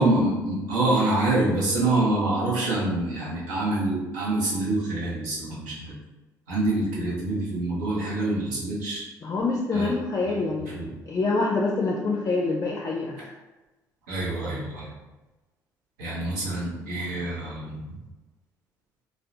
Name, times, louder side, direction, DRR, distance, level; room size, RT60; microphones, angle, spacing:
voice 1, 0.0-5.9 6.5-9.0 9.7-9.9 10.7-10.9 14.1-14.9 16.0-18.0, right 2 dB, 85° right, -6 dB, 0.7 m, -26 dB
voice 2, 9.2-10.8 11.1-13.3, left 3 dB, 35° left, -1 dB, 0.4 m, -26 dB
2.3 x 2.0 x 2.8 m, 1.1 s
hypercardioid pair, 50°, 9 cm